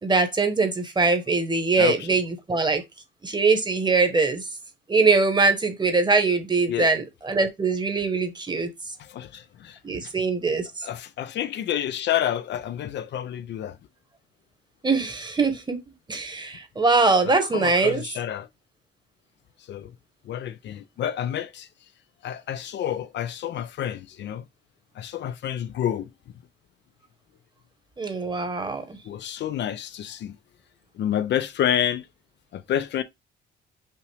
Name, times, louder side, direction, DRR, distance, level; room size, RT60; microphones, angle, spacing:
voice 1, 0.0-2.8 3.2-4.4 4.9-8.7 9.8-10.7 14.8-15.8 16.1-18.0 28.0-29.0, right 3 dB, 20° right, 1.1 m, -22 dB
voice 2, 9.0-9.8 10.8-13.8 17.3-18.5 19.7-19.9 20.3-21.7 22.2-24.4 25.0-26.1 29.0-30.3 31.0-32.1 32.5-33.0, left 10 dB, 65° left, 0.5 m, -29 dB
5.6 x 2.5 x 3.3 m
cardioid pair, 90°, 20 cm